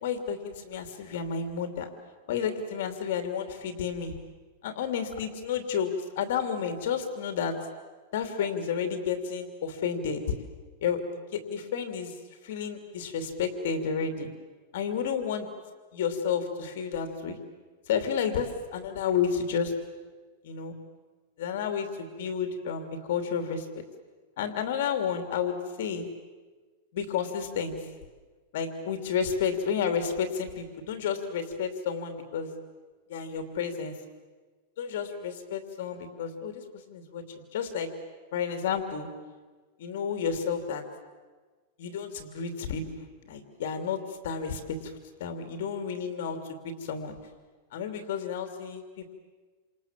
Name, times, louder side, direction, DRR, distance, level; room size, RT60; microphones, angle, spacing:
voice 1, 0.0-1.9 2.3-4.2 4.6-7.5 8.1-10.2 10.8-12.2 12.4-14.3 14.7-15.5 15.9-17.4 17.9-19.7 20.4-20.8 21.4-23.8 24.4-26.1 26.9-27.8 28.5-32.5 33.1-33.9 34.8-37.2 37.5-37.9 38.3-39.1 39.8-40.8 41.8-42.8 43.3-47.2 47.7-49.1, left 7 dB, 60° left, 7 dB, 3.0 m, -31 dB
28.5 x 27.5 x 7.6 m, 1.4 s
supercardioid pair, 170°, 0 cm